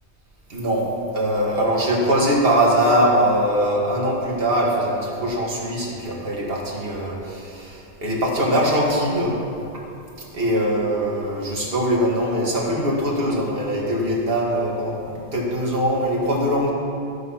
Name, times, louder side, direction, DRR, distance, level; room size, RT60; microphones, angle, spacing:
voice 1, 0.5-0.9 1.1-9.4 9.7-9.8 10.2-16.7, equal, 55° right, -3 dB, 2.2 m, -22 dB
14.0 x 6.9 x 5.7 m, 2.7 s
omnidirectional pair, 1.2 m